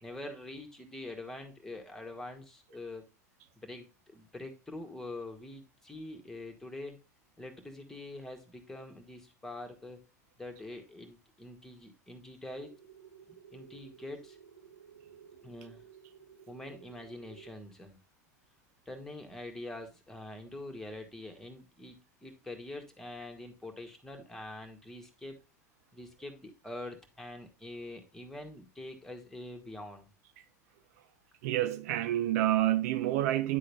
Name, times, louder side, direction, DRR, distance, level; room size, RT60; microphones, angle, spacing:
voice 1, 0.0-3.0 3.6-7.0 7.4-10.0 10.4-12.7 13.5-14.4 15.4-15.8 16.5-18.0 18.9-25.4 25.9-30.1, left 2 dB, 5° left, 1.7 m, -45 dB
sound 1, 12.5-17.5, right 8 dB, 85° right, 2.9 m, -55 dB
voice 2, 31.4-33.6, right 13 dB, 65° right, 0.5 m, -28 dB
9.9 x 3.8 x 3.5 m
hypercardioid pair, 95°, 9 cm